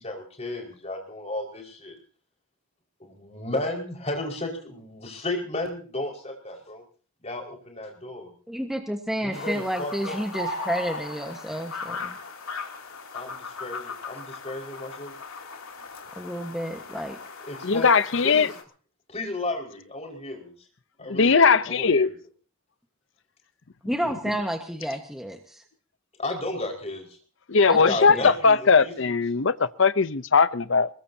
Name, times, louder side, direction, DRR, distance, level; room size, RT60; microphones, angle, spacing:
voice 1, 0.0-1.9 3.0-6.8 7.2-8.3 9.2-10.2 13.1-15.1 17.4-17.9 18.2-18.5 19.1-20.5 21.0-22.1 26.2-27.1 27.7-29.1, left 2 dB, 30° left, 5.1 m, -33 dB
voice 2, 8.5-12.2 16.2-17.2 23.8-25.6 27.7-28.3, equal, ahead, 1.4 m, -30 dB
sound 1, 9.3-18.6, left 3 dB, 80° left, 2.9 m, -38 dB
voice 3, 17.6-18.5 21.1-22.1 27.5-30.9, left 5 dB, 60° left, 0.7 m, -19 dB
23.0 x 21.5 x 2.8 m
head